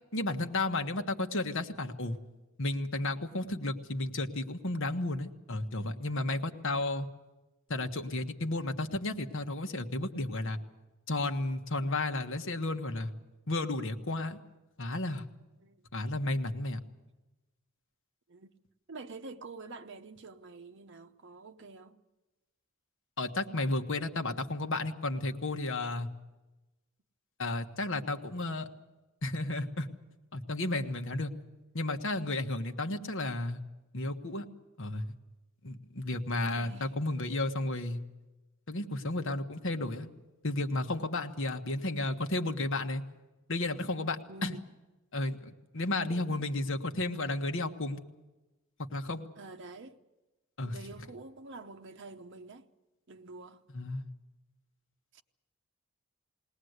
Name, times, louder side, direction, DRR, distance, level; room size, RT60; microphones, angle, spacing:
voice 1, 0.1-2.2 2.6-7.1 7.7-10.6 11.1-13.1 13.5-14.4 14.8-15.2 15.9-16.8 23.2-26.1 27.4-28.7 29.2-29.9 30.3-31.3 31.7-33.6 33.9-34.5 34.8-35.1 35.6-38.0 38.7-40.1 40.4-43.0 43.5-44.6 45.1-48.0 48.9-49.3 50.6-50.8 53.7-54.1, left 2 dB, 65° left, 1.5 m, -33 dB
voice 2, 18.9-22.0 36.5-36.9 44.3-44.7 46.1-46.5 49.4-50.0 50.6-52.7 53.1-53.6 55.1-55.2, right 3 dB, 60° right, 0.9 m, -47 dB
21.0 x 18.5 x 8.1 m
head